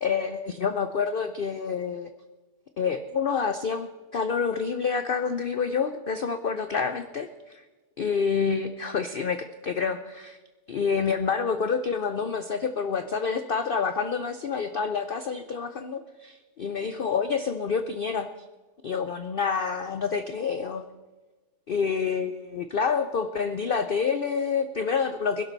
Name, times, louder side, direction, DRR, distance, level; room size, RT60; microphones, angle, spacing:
voice 1, 0.0-2.1 2.8-7.6 8.0-10.4 10.7-18.3 18.8-20.8 21.7-25.4, left 5 dB, 85° left, 9 dB, 0.4 m, -28 dB
21.0 x 11.5 x 4.0 m, 1.2 s
omnidirectional pair, 1.7 m